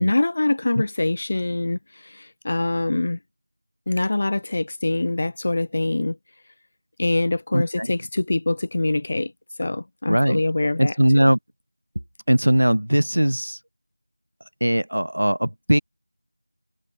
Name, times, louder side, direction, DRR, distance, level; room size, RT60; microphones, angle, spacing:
voice 1, 0.0-1.8 2.0-3.2 3.9-6.2 7.0-9.3 9.6-10.9, left 2 dB, 25° left, 3.7 m, -24 dB
voice 2, 7.5-7.9 10.1-10.4 10.8-11.4 12.3-13.6 14.6-15.8, equal, 65° right, 3.2 m, -20 dB
figure-of-eight pair, 175°, 0 cm